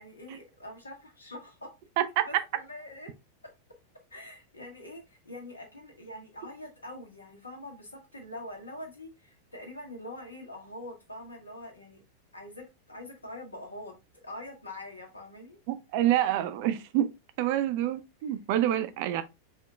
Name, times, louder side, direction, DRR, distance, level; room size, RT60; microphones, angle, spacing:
voice 1, 0.0-1.7 2.2-3.1 4.1-12.0 12.3-13.9 14.2-15.6 16.1-16.3, left 1 dB, 80° left, 1.3 m, -44 dB
voice 2, 15.7-17.1 17.4-19.2, right 12 dB, 50° right, 0.5 m, -27 dB
5.0 x 3.7 x 2.4 m
figure-of-eight pair, 90°, 0 cm